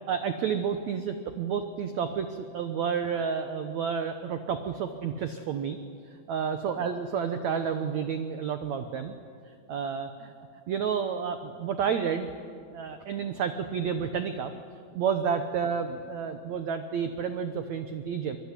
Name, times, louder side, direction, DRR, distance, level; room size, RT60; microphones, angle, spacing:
voice 1, 0.1-5.8 6.1-9.2 9.5-10.3 10.7-12.3 12.7-14.5 14.9-18.4, right 7 dB, 80° right, 8 dB, 1.6 m, -30 dB
24.0 x 23.5 x 9.9 m, 2.3 s
omnidirectional pair, 4.7 m